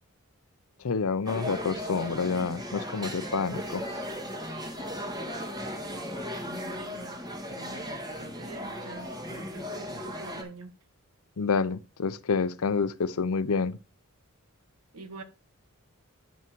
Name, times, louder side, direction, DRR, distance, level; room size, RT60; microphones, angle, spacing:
voice 1, 0.8-3.8 11.4-13.8, left 5 dB, 70° left, 0.6 m, -28 dB
sound 1, 1.3-10.4, equal, 20° right, 1.7 m, -36 dB
voice 2, 6.1-7.2 7.5-10.7 14.9-15.2, right 3 dB, 85° right, 1.6 m, -46 dB
9.4 x 5.9 x 4.6 m
head